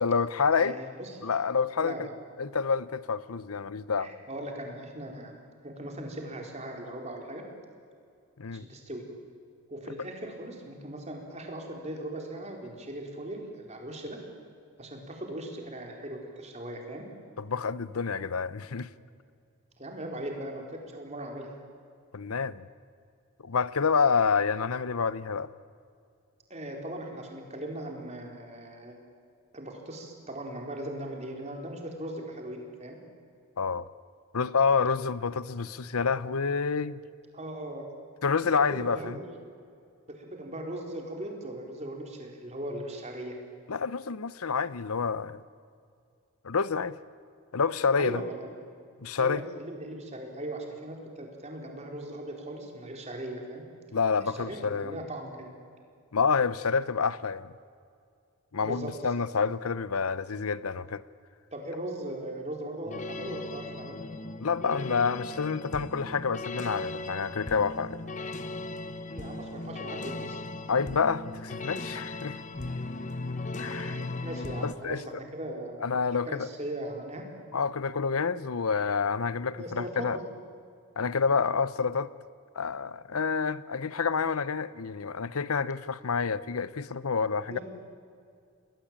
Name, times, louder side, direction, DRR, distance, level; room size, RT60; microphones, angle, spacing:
voice 1, 0.0-0.8 1.2-2.1 2.4-4.1 8.4-8.7 17.4-18.9 22.1-22.7 23.4-25.5 33.6-33.9 34.3-37.0 38.2-39.1 43.7-45.4 46.4-47.0 47.5-48.2 49.0-49.4 53.9-55.0 56.1-57.5 58.5-61.0 64.4-68.0 70.7-72.4 73.6-74.0 74.6-75.0 75.8-76.5 77.5-80.2 81.0-82.1 82.5-87.6, left 5 dB, 90° left, 0.8 m, -28 dB
voice 2, 0.6-1.1 1.8-2.1 4.0-5.3 5.6-7.4 8.5-9.1 9.7-14.2 14.8-17.0 19.8-21.5 26.5-29.0 29.5-33.0 37.3-37.8 38.6-39.4 40.1-43.4 48.0-48.5 49.2-53.6 54.2-55.5 58.6-58.9 61.5-64.0 69.1-70.4 73.7-75.9 76.3-77.3 79.6-80.2 87.5-87.6, right 1 dB, 30° right, 4.4 m, -39 dB
sound 1, 62.9-74.7, left 2 dB, 35° left, 1.0 m, -37 dB
29.0 x 20.5 x 9.0 m
head